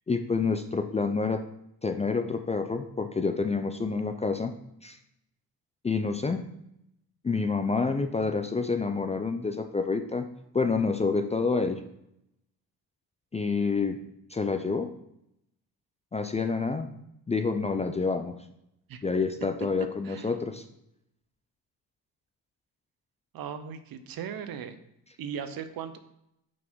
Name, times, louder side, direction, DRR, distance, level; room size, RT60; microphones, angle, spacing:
voice 1, 0.1-1.4 1.8-4.5 4.8-5.0 5.8-6.4 7.2-10.3 10.5-11.8 13.3-14.0 14.3-14.9 16.1-16.9 17.3-18.3 19.0-20.6, left 4 dB, 15° left, 7 dB, 0.4 m, -28 dB
voice 2, 23.3-24.8 25.2-26.0, right 7 dB, 60° right, 10 dB, 0.8 m, -38 dB
6.0 x 4.0 x 4.6 m, 0.78 s
cardioid pair, 95°, 40 cm